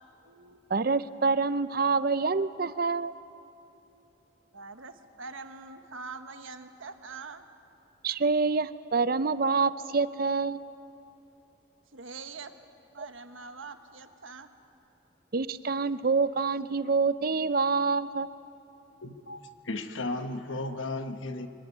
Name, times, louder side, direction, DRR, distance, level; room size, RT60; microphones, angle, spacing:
voice 1, 0.2-0.6 4.5-7.4 11.9-12.5 12.9-14.5, right 4 dB, 80° right, 8 dB, 1.3 m, -44 dB
voice 2, 0.7-3.1 8.0-10.6 13.0-13.1 15.3-18.3, right 4 dB, 50° right, 14 dB, 0.6 m, -26 dB
voice 3, 19.0-21.5, left 2 dB, 75° left, 7 dB, 1.3 m, -35 dB
24.0 x 18.0 x 10.0 m, 2.9 s
head